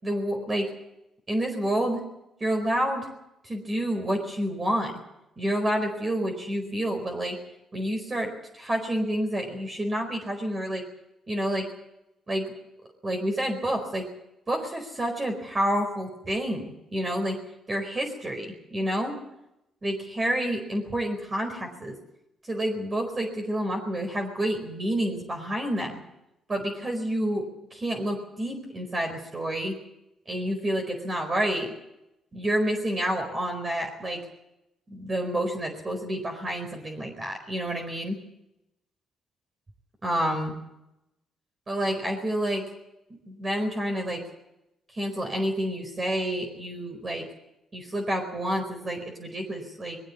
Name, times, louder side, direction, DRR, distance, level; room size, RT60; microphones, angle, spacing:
voice 1, 0.0-0.7 1.3-2.0 2.4-3.1 3.4-4.9 5.4-7.4 7.7-10.8 11.3-11.7 12.3-12.5 13.0-14.0 14.5-17.4 17.7-19.1 19.8-21.9 22.5-26.0 26.5-29.8 30.3-31.7 32.3-34.2 34.9-38.2 40.0-40.5 41.7-42.6 43.1-44.2 44.9-47.2 47.7-50.0, right 1 dB, 30° right, 3 dB, 4.5 m, -29 dB
21.0 x 16.0 x 8.4 m, 0.88 s
cardioid pair, 90°, 0 cm